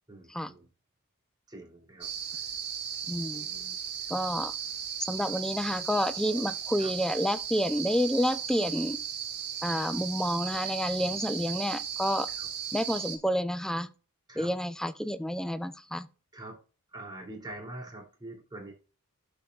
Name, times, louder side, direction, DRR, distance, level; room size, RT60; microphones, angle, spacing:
voice 1, 0.1-0.7 1.5-2.5 3.3-4.1 6.8-6.9 11.0-11.2 12.3-12.5 14.3-14.5 16.3-16.6 16.9-18.7, right 2 dB, 20° right, 3.1 m, -45 dB
sound 1, 2.0-13.2, right 8 dB, 50° right, 1.8 m, -36 dB
voice 2, 3.1-3.5 4.1-4.5 5.1-9.0 9.6-12.3 12.7-13.9 14.4-16.1, equal, 5° left, 0.6 m, -29 dB
12.0 x 5.5 x 2.4 m
head